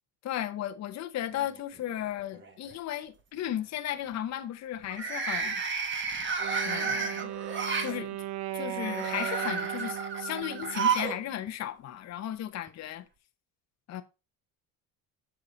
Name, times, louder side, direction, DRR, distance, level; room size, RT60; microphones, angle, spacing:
voice 1, 0.2-5.6 6.6-7.3 7.8-8.3 8.5-13.1 13.9-14.0, left 12 dB, 45° left, 0.7 m, -35 dB
sound 1, 1.3-2.0 2.3-2.7 4.8-7.9 8.8-11.2 11.5-11.6 12.7-12.8, right 5 dB, 30° right, 1.1 m, -32 dB
Wind instrument woodwind instrument, 6.4-11.4, right 14 dB, 85° right, 0.7 m, -38 dB
7.0 x 4.7 x 3.8 m
cardioid pair, 115°, 37 cm